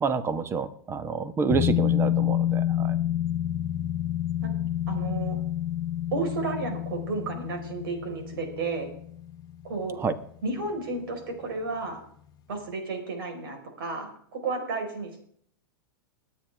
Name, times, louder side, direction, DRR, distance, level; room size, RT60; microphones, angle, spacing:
voice 1, 0.0-3.0 10.0-10.1, right 5 dB, 20° right, 12 dB, 1.2 m, -28 dB
sound 1, 1.5-10.6 10.9-11.0, left 12 dB, 35° left, 1.0 m, -28 dB
voice 2, 4.9-5.4 6.1-8.9 9.6-10.0 10.4-12.0 12.5-15.2, right 3 dB, 75° right, 4 dB, 4.7 m, -32 dB
20.5 x 9.4 x 3.5 m, 0.63 s
hypercardioid pair, 120°, 12 cm